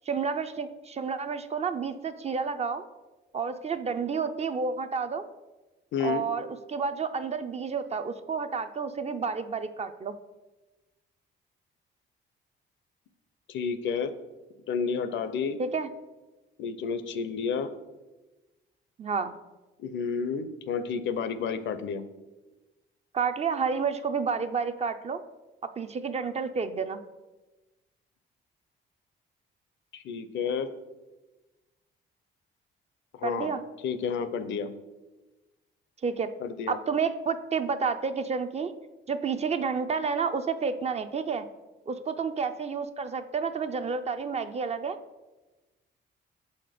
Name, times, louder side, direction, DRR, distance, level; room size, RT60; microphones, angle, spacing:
voice 1, 0.1-2.8 3.3-5.3 6.0-10.2 15.6-15.9 19.0-19.3 23.1-25.2 25.8-27.0 33.2-33.6 36.0-36.3 36.7-38.7 39.1-41.5 41.9-45.0, right 5 dB, 35° right, 9 dB, 0.4 m, -30 dB
voice 2, 5.9-6.2 13.5-14.1 14.7-15.6 16.6-17.7 19.8-22.0 29.9-30.7 33.2-33.5 33.8-34.7 36.4-36.8, left 6 dB, 70° left, 12 dB, 0.5 m, -30 dB
5.9 x 4.2 x 5.0 m, 1.1 s
cardioid pair, 90°, 20 cm